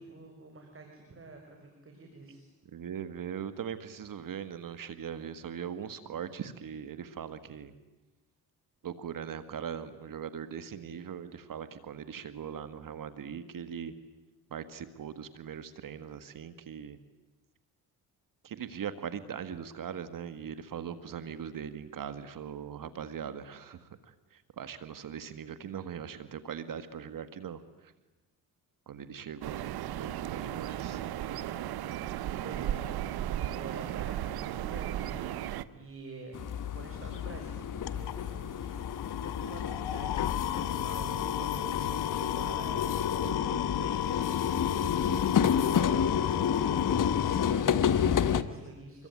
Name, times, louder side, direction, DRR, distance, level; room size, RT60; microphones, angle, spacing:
voice 1, 0.0-2.4 32.4-35.3 35.7-49.1, right 3 dB, 35° right, 3 dB, 5.9 m, -47 dB
voice 2, 2.7-7.7 8.8-13.9 14.5-17.0 18.4-23.9 24.3-27.6 28.9-29.6 29.9-31.0 44.9-45.3, right 8 dB, 60° right, 12 dB, 1.8 m, -40 dB
sound 1, 29.4-35.6, right 12 dB, 75° right, 1.1 m, -35 dB
sound 2, 36.3-48.4, left 8 dB, 55° left, 1.5 m, -30 dB
sound 3, 37.6-47.5, left 11 dB, 85° left, 1.7 m, -34 dB
26.5 x 22.5 x 9.7 m, 1.1 s
cardioid pair, 75°, 38 cm